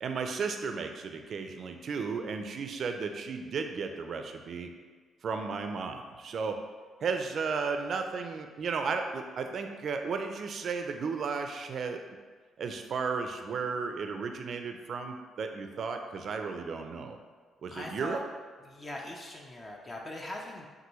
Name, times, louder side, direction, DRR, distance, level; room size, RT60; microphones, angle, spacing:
voice 1, 0.0-4.7 5.2-6.5 7.0-12.0 12.6-17.2 17.6-18.2, right 5 dB, 55° right, 5 dB, 0.4 m, -34 dB
voice 2, 17.7-18.2 18.6-20.7, left 1 dB, 30° left, 0 dB, 0.5 m, -41 dB
6.0 x 2.6 x 3.0 m, 1.5 s
cardioid pair, 90°, 0 cm